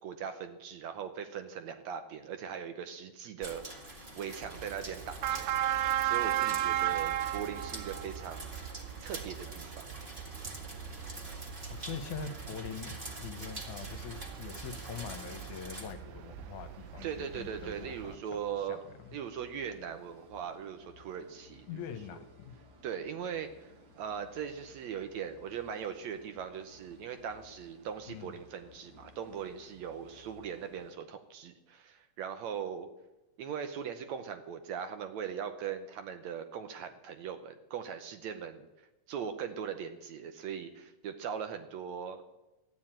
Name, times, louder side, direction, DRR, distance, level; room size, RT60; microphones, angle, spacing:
voice 1, 0.0-5.5 6.0-8.6 9.0-9.9 17.0-18.8 19.1-21.8 22.1-22.2 22.8-23.7 24.0-32.9 33.4-38.7 39.1-42.2, right 7 dB, 70° right, 8 dB, 1.8 m, -40 dB
sound 1, 3.4-15.9, right 1 dB, 25° right, 1.2 m, -46 dB
sound 2, 4.4-18.2, right 12 dB, 90° right, 2.3 m, -36 dB
voice 2, 11.7-18.2 18.6-19.2 21.7-22.5 28.1-28.4, left 7 dB, 70° left, 8 dB, 2.3 m, -43 dB
sound 3, 14.9-30.9, left 1 dB, 45° right, 1.5 m, -59 dB
13.5 x 9.4 x 8.8 m, 1.0 s
omnidirectional pair, 3.7 m